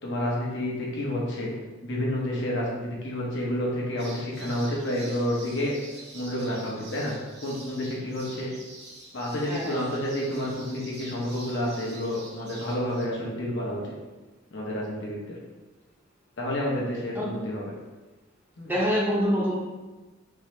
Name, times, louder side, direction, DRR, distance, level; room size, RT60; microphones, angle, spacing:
voice 1, 0.0-1.5 1.8-5.7 6.1-7.2 7.4-8.5 9.1-13.8 14.5-15.4 16.4-17.7 18.6-18.7, left 1 dB, 55° left, -4 dB, 1.0 m, -29 dB
sound 1, 4.0-13.0, right 2 dB, 50° right, 0.8 m, -46 dB
voice 2, 9.5-9.8 17.1-17.3 18.6-19.6, equal, 10° right, -6 dB, 0.8 m, -26 dB
4.6 x 2.8 x 3.2 m, 1.2 s
head